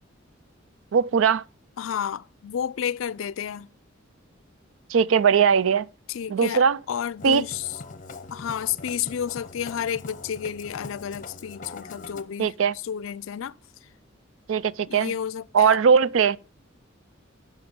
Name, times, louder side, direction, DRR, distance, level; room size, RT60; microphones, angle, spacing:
voice 1, 0.9-1.4 4.9-5.9 6.3-6.8 7.2-7.4 12.4-12.7 14.5-15.1 15.5-16.4, right 6 dB, 80° right, 0.4 m, -19 dB
voice 2, 1.8-3.7 6.1-7.8 8.3-12.5 12.8-13.9 14.9-15.8, left 8 dB, 85° left, 0.4 m, -31 dB
Musical instrument, 7.2-12.2, left 3 dB, 40° left, 0.8 m, -42 dB
10.5 x 5.7 x 5.1 m
head